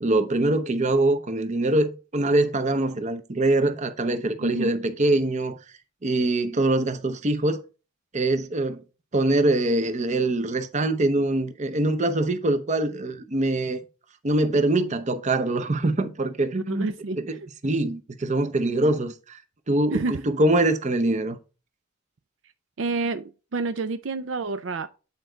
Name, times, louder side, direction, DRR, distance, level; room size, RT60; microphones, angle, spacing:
voice 1, 0.0-5.6 6.0-7.6 8.1-8.8 9.1-13.8 14.2-16.9 17.2-17.4 17.6-19.4 19.7-21.4, right 2 dB, 35° right, 0.7 m, -23 dB
voice 2, 4.4-4.7 16.5-17.4 19.9-20.2 22.8-24.9, right 3 dB, 70° right, 0.5 m, -29 dB
8.5 x 4.5 x 3.8 m
head